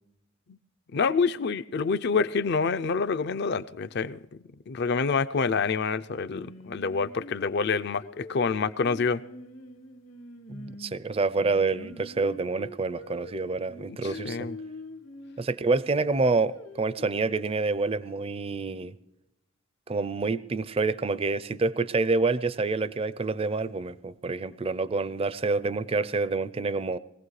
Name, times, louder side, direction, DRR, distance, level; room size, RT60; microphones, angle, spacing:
voice 1, 0.9-4.2 4.7-9.2 13.9-14.6, left 5 dB, 50° left, 14 dB, 0.5 m, -27 dB
Singing, 6.3-11.0 11.4-15.4 15.9-17.0, left 1 dB, 75° left, 1.5 m, -44 dB
voice 2, 10.5-14.5 15.4-19.0 19.9-27.0, right 3 dB, 30° right, 17 dB, 0.4 m, -27 dB
21.5 x 16.0 x 3.2 m, 0.91 s
head